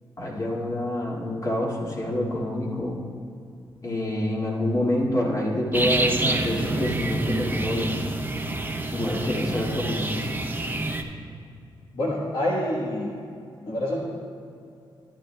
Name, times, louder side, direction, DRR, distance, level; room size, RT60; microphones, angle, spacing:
voice 1, 0.2-3.0 3.8-8.1 8.9-10.2, left 1 dB, 35° left, -3 dB, 2.2 m, -27 dB
sound 1, 5.7-11.0, right 2 dB, 20° right, 0.8 m, -27 dB
voice 2, 11.9-13.1 13.7-14.0, left 1 dB, 60° left, -4 dB, 1.3 m, -26 dB
13.5 x 10.5 x 2.3 m, 2.5 s
cardioid pair, 60°, 9 cm